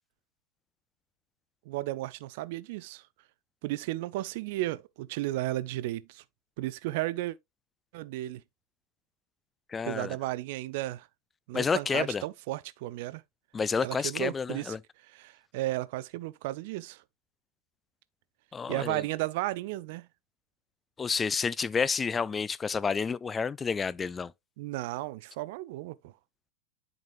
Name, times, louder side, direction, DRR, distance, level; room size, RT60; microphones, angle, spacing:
voice 1, 1.7-3.0 3.6-6.2 6.6-7.4 7.9-8.4 9.8-11.1 11.5-13.2 13.8-14.7 15.1-17.0 18.7-20.1 24.6-26.0, right 16 dB, 50° right, 0.5 m, -34 dB
voice 2, 9.7-10.2 11.5-12.2 13.5-14.8 18.5-19.0 21.0-24.3, left 5 dB, 15° left, 0.4 m, -30 dB
10.5 x 5.2 x 2.5 m
figure-of-eight pair, 90°, 0 cm